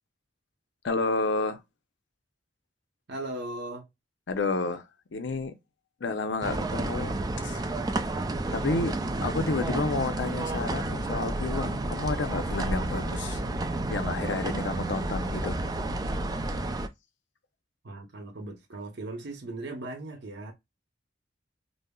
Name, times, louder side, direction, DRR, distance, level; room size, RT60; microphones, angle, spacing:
voice 1, 0.8-1.6 4.3-4.8 5.1-5.5 6.0-7.6 8.5-13.4 13.9-15.6, left 3 dB, 70° left, 0.6 m, -30 dB
voice 2, 3.1-3.9 17.8-20.5, right 2 dB, 65° right, 0.8 m, -38 dB
sound 1, 6.4-16.9, right 2 dB, 20° right, 0.4 m, -31 dB
5.2 x 2.0 x 2.3 m
head